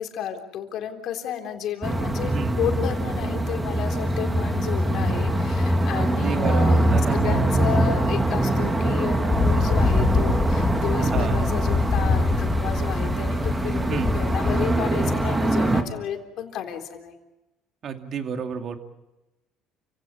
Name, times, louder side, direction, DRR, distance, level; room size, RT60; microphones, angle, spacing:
voice 1, 0.0-17.1, left 9 dB, 55° left, 4 dB, 3.7 m, -32 dB
sound 1, 1.8-15.8, right 1 dB, 15° right, 2.5 m, -23 dB
voice 2, 2.3-2.6 5.9-7.4 11.0-11.5 13.9-14.2 17.8-18.8, right 6 dB, 45° right, 6 dB, 2.7 m, -31 dB
sound 2, 9.3-14.8, left 4 dB, 35° left, 5.3 m, -25 dB
29.5 x 17.0 x 8.7 m, 1.0 s
cardioid pair, 115°, 0 cm